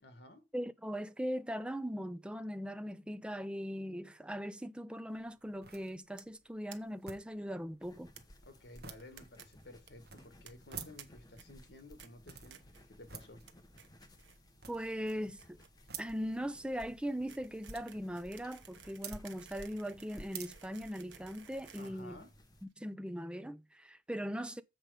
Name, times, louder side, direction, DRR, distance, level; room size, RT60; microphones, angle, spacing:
voice 1, 0.0-0.5 8.4-13.4 21.7-22.3, left 2 dB, 60° left, 1.8 m, -54 dB
voice 2, 0.5-8.1 14.7-15.6 16.0-22.2 22.6-24.6, equal, 5° right, 0.5 m, -40 dB
sound 1, 5.1-21.6, right 7 dB, 60° right, 1.2 m, -54 dB
sound 2, 6.2-6.4 6.7-6.8 7.0-7.1 7.3-7.4 8.2-8.3 8.8-9.4 9.7-9.9 10.5-11.0 11.4-11.7 12.0-12.1 12.5-12.8 13.2-13.5 13.8-14.4 14.7-22.7, right 8 dB, 80° right, 1.1 m, -56 dB
sound 3, 7.8-22.6, equal, 20° left, 1.2 m, -58 dB
7.3 x 5.1 x 6.6 m
head